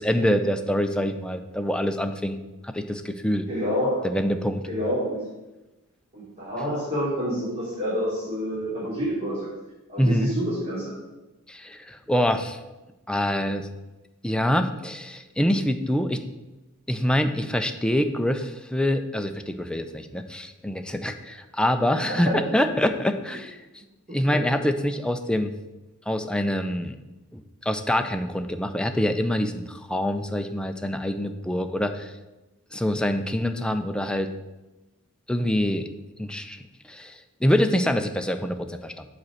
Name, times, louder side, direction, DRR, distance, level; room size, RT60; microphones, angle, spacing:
voice 1, 0.0-2.4 2.6-3.4 4.0-4.7 10.0-10.3 11.5-12.6 13.1-13.7 14.2-16.2 16.9-23.6 24.1-25.5 26.1-27.0 27.3-32.1 32.7-34.3 35.3-35.9 36.2-39.1, equal, 5° left, 7 dB, 0.4 m, -25 dB
voice 2, 3.5-4.1 4.7-5.2 6.1-9.4 9.9-10.9 22.1-22.5 24.3-24.4, equal, 30° right, -10 dB, 3.0 m, -28 dB
7.6 x 4.2 x 6.3 m, 1.0 s
head